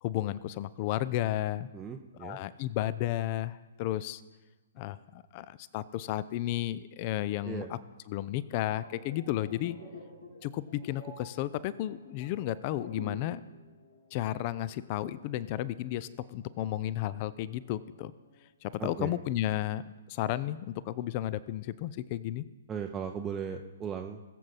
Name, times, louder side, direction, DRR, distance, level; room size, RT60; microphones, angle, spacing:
voice 1, 0.0-1.7 2.2-4.2 4.8-7.8 8.1-9.8 10.4-13.4 14.1-18.1 18.6-19.8 20.1-22.4, left 13 dB, 35° left, 18 dB, 0.5 m, -33 dB
voice 2, 1.7-2.4 7.4-7.7 18.8-19.2 22.7-24.3, right 7 dB, 15° right, 3 dB, 0.6 m, -37 dB
sound 1, 8.6-13.4 13.7-13.9, left 2 dB, 85° left, 3.4 m, -48 dB
sound 2, 9.2-18.5, left 3 dB, 50° left, 3.0 m, -64 dB
20.0 x 7.4 x 4.1 m, 1.2 s
figure-of-eight pair, 120°, 0 cm